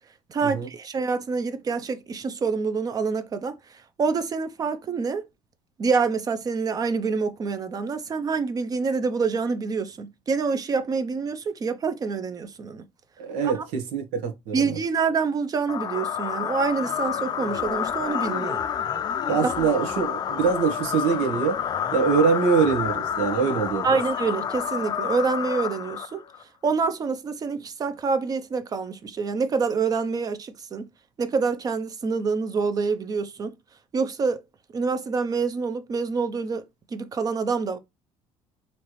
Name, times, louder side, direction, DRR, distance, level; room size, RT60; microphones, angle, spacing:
voice 1, 0.3-3.6 4.0-5.3 5.8-12.8 13.5-13.6 14.5-18.6 19.4-19.5 23.8-26.2 26.6-30.9 31.2-33.6 33.9-34.4 34.7-36.6 36.9-37.8, right 5 dB, 30° right, 0.6 m, -26 dB
voice 2, 13.2-14.8 19.3-21.6 21.9-23.9, right 6 dB, 85° right, 1.2 m, -24 dB
sound 1, 15.7-26.4, left 8 dB, 35° left, 0.5 m, -29 dB
4.3 x 3.1 x 3.1 m
cardioid pair, 120°, 12 cm